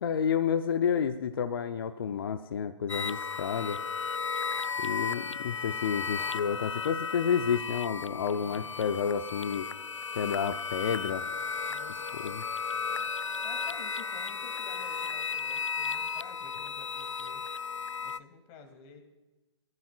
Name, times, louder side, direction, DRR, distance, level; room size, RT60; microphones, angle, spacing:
voice 1, 0.0-3.8 4.8-9.7 10.1-11.3 12.1-12.4, left 7 dB, 50° left, 10 dB, 0.7 m, -30 dB
sound 1, 2.9-18.2, left 5 dB, 85° left, 0.4 m, -35 dB
voice 2, 6.0-6.7 8.4-8.9 11.7-12.4 13.2-17.4 18.0-19.0, left 6 dB, 30° left, 5 dB, 2.6 m, -51 dB
20.5 x 14.0 x 2.4 m, 1.1 s
figure-of-eight pair, 130°, 15 cm